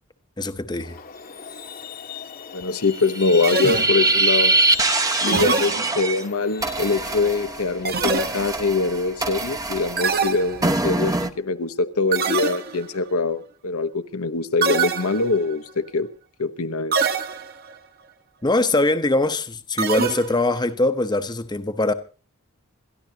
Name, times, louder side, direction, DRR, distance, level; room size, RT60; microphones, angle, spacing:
voice 1, 0.4-1.0 18.4-21.9, left 2 dB, 20° left, 0.8 m, -22 dB
Truck, 0.8-8.2, left 7 dB, 40° left, 1.1 m, -38 dB
voice 2, 2.5-4.5 5.2-16.1 16.4-17.0, left 3 dB, 75° left, 0.9 m, -23 dB
sound 1, 3.0-6.2 6.6-11.3, right 2 dB, 15° right, 0.8 m, -23 dB
sound 2, 3.4-4.3 5.3-6.3 7.9-8.7 10.0-11.0 12.1-13.0 14.6-15.5 16.9-17.7 19.8-20.6, right 4 dB, 45° right, 1.2 m, -25 dB
27.5 x 13.0 x 2.8 m
head